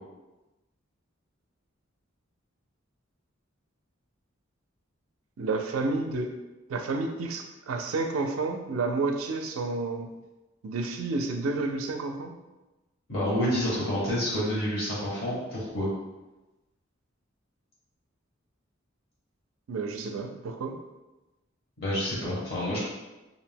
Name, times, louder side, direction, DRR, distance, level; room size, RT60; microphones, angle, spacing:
voice 1, 5.4-6.3 6.7-10.1 10.6-12.3 19.7-20.8, right 3 dB, 85° right, 4 dB, 0.4 m, -30 dB
voice 2, 13.1-15.9 21.8-22.8, equal, 55° left, -7 dB, 0.9 m, -28 dB
2.5 x 2.1 x 3.3 m, 1.1 s
head